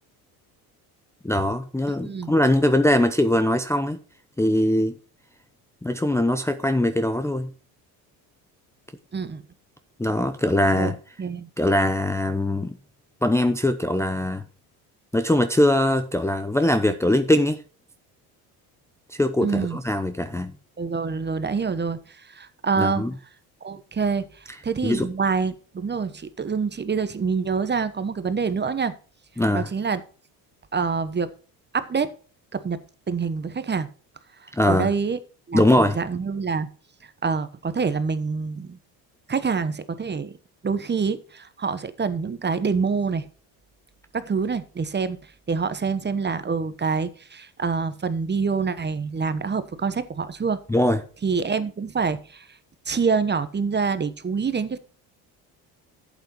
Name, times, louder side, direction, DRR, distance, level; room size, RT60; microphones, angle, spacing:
voice 1, 1.2-4.0 4.4-4.9 5.8-7.5 10.0-11.0 11.6-12.8 13.2-14.4 15.1-17.6 19.1-20.5 22.8-23.1 24.8-25.1 29.4-29.7 34.5-34.9 35.5-36.0 50.7-51.0, left 1 dB, 5° left, 0.7 m, -21 dB
voice 2, 1.9-2.3 9.1-9.4 10.8-11.5 19.4-19.8 20.8-23.0 23.6-28.9 29.5-30.0 30.7-31.3 31.7-32.1 32.5-32.8 33.1-33.9 34.7-35.2 35.5-36.7 37.2-38.8 39.3-40.4 40.6-43.3 44.1-45.2 45.5-50.6 51.2-52.5 52.8-54.8, right 5 dB, 25° right, 1.1 m, -26 dB
11.5 x 8.5 x 3.0 m
supercardioid pair, 80°, 42 cm